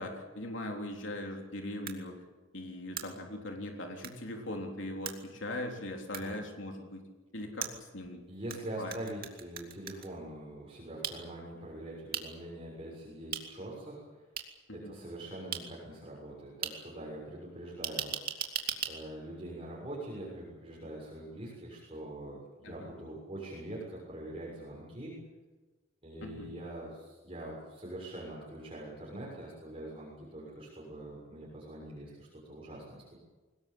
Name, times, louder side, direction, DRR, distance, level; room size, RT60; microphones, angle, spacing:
voice 1, 0.0-2.2 2.5-7.0 7.3-8.2 8.8-9.0 14.7-15.0 22.6-22.9 26.2-26.5, left 1 dB, 70° left, 2 dB, 3.7 m, -40 dB
sound 1, 1.9-2.0 3.0-3.1 4.0-4.1 5.1-5.2 6.1-6.2 7.6-8.6 8.9-10.1 11.0-11.1 12.1-12.2 13.3-13.4 14.4-14.5 15.5-15.6 16.6-16.7 17.8-18.9, right 9 dB, 50° right, 2.6 m, -36 dB
voice 2, 8.3-14.2 14.7-18.4 18.9-25.2 26.0-33.2, right 1 dB, 30° right, -4 dB, 6.7 m, -44 dB
22.5 x 20.0 x 8.8 m, 1.2 s
head